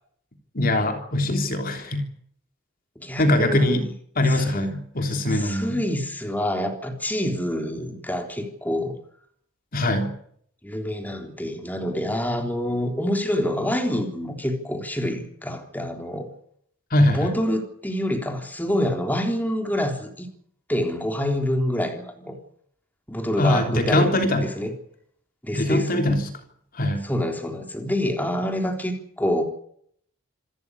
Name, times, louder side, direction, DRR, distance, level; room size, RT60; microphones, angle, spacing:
voice 1, 0.6-2.1 3.2-3.8 4.2-5.8 9.7-10.1 16.9-17.3 23.4-24.5 25.5-26.4 26.7-27.0, left 1 dB, 45° left, 5 dB, 3.4 m, -22 dB
voice 2, 3.0-3.9 4.3-4.7 5.3-9.0 10.6-16.3 17.1-20.3 20.7-22.4 23.1-24.7 25.4-26.0 27.0-29.4, left 1 dB, 10° left, 4 dB, 3.7 m, -27 dB
27.0 x 14.0 x 9.9 m, 0.66 s
head